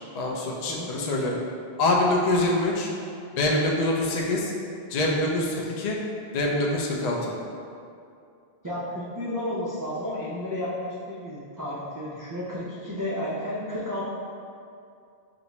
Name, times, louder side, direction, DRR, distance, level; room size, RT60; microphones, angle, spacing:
voice 1, 0.1-1.4 1.8-2.9 3.3-4.5 4.9-6.0 6.3-7.3, left 1 dB, 55° left, -2 dB, 0.4 m, -25 dB
voice 2, 8.6-14.0, left 1 dB, 30° right, -9 dB, 0.4 m, -32 dB
5.4 x 2.5 x 2.9 m, 2.5 s
omnidirectional pair, 1.1 m